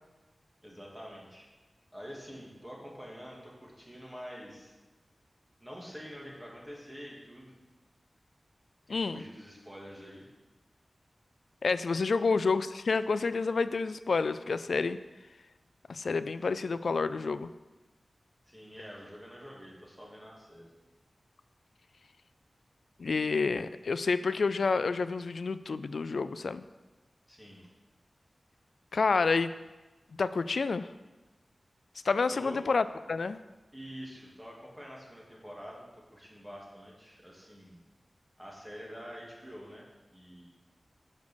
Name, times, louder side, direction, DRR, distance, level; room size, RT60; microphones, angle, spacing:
voice 1, 0.6-1.5 1.9-4.7 5.6-7.6 8.9-10.3 12.2-12.4 18.5-20.7 27.3-27.7 32.3-32.6 33.7-37.8 38.4-40.4, equal, 10° right, -3 dB, 2.0 m, -47 dB
voice 2, 8.9-9.2 11.6-15.0 15.9-17.5 23.0-26.7 28.9-29.5 30.2-30.9 32.0-33.4, left 4 dB, 80° left, 13 dB, 0.3 m, -29 dB
6.5 x 5.1 x 6.8 m, 1.2 s
wide cardioid pair, 100°, 0 cm